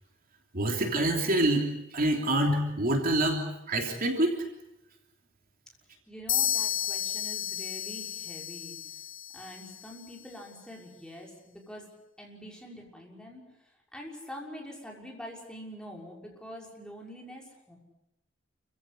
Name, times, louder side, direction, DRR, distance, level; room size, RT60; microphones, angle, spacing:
voice 1, 0.5-4.4, right 1 dB, 50° right, 3 dB, 3.2 m, -26 dB
voice 2, 6.1-8.8 9.3-11.9 12.2-17.8, equal, 5° left, -1 dB, 6.2 m, -45 dB
sound 1, 6.3-10.0, left 11 dB, 80° left, 1.5 m, -32 dB
28.5 x 16.0 x 9.7 m, 0.90 s
head